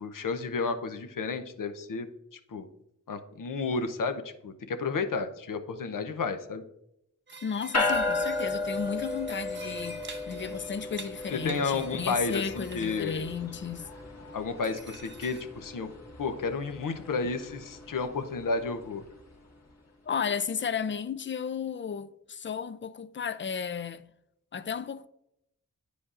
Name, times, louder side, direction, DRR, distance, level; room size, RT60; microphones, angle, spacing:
voice 1, 0.0-2.1 2.5-2.7 3.1-6.6 11.3-13.3 14.3-15.9 16.2-19.0, left 4 dB, 75° left, 0.7 m, -32 dB
sound 1, 7.3-13.2 13.6-14.0 14.3-14.4 14.6-15.4, right 3 dB, 35° right, 0.9 m, -48 dB
voice 2, 7.4-10.0 10.3-13.9 20.1-24.1 24.5-25.1, left 6 dB, 35° left, 0.4 m, -34 dB
sound 2, 7.7-19.3, left 2 dB, 50° left, 1.7 m, -35 dB
9.7 x 5.0 x 2.5 m
wide cardioid pair, 65°, 33 cm